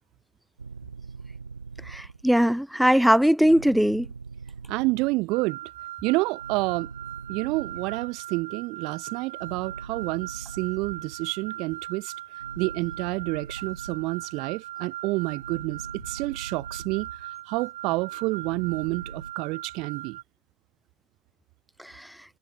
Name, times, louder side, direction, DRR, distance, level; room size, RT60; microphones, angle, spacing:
sound 1, 0.6-2.3 3.4-5.3 6.4-8.4 9.4-11.6 12.4-14.5 15.4-17.4 18.4-19.3, right 5 dB, 90° right, 2.4 m, -42 dB
voice 1, 1.9-4.1 21.8-22.1, equal, ahead, 3.3 m, -20 dB
voice 2, 4.7-5.6 6.0-6.9 7.3-12.1 12.6-17.1 17.5-20.2, right 23 dB, 55° right, 2.9 m, -29 dB
sound 2, 5.3-20.2, right 14 dB, 75° right, 3.9 m, -40 dB
figure-of-eight pair, 75°, 0 cm